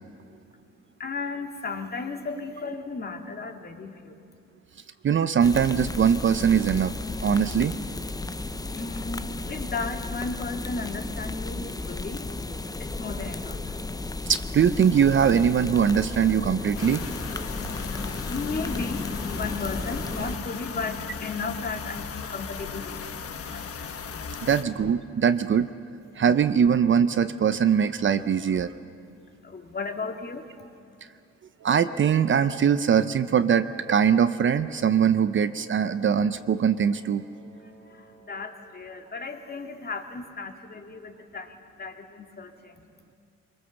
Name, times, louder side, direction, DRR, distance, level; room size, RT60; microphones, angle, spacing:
voice 1, 1.0-4.2 8.7-12.3 12.8-13.7 17.4-24.5 26.1-26.2 29.1-30.8 37.6-42.8, left 4 dB, 30° left, 4 dB, 2.1 m, -35 dB
voice 2, 5.0-6.9 7.2-7.8 14.3-17.0 24.4-25.7 26.2-28.7 31.6-37.2, right 7 dB, 40° right, 12 dB, 0.6 m, -22 dB
sound 1, 5.4-20.4, left 2 dB, 10° left, 0.7 m, -34 dB
sound 2, 16.7-24.6, left 6 dB, 50° left, 1.3 m, -37 dB
Wind instrument woodwind instrument, 31.6-38.9, right 5 dB, 80° right, 3.7 m, -52 dB
23.0 x 22.5 x 7.1 m, 2.4 s
cardioid pair, 90°, 30 cm